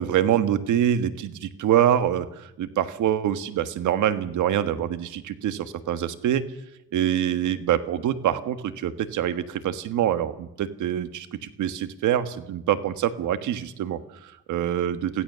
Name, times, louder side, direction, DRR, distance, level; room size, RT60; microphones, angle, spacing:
voice 1, 0.0-6.4 6.9-15.2, right 10 dB, 80° right, 12 dB, 1.5 m, -25 dB
23.0 x 16.5 x 6.9 m, 0.83 s
cardioid pair, 90°, 30 cm